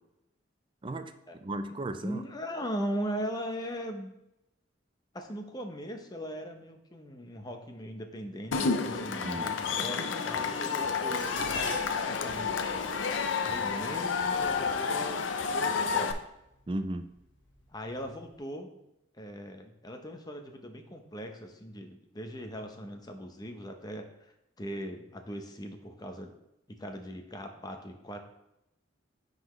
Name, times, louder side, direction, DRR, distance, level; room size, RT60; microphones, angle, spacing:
voice 1, 0.8-2.2 9.2-9.6 16.7-17.1, right 1 dB, 25° right, 9 dB, 0.4 m, -35 dB
voice 2, 2.0-4.1 5.1-11.3 12.0-12.7 13.4-15.2 15.5-16.1 17.7-18.8 19.1-26.3 26.7-28.2, equal, 20° left, 5 dB, 0.7 m, -39 dB
Cheering / Crowd, 8.5-16.1, left 5 dB, 85° left, 0.6 m, -30 dB
Dishes pots and pans, 11.2-15.5 16.4-16.8 17.2-18.0 18.3-18.4, left 2 dB, 70° left, 1.3 m, -43 dB
10.0 x 4.0 x 3.1 m, 0.85 s
head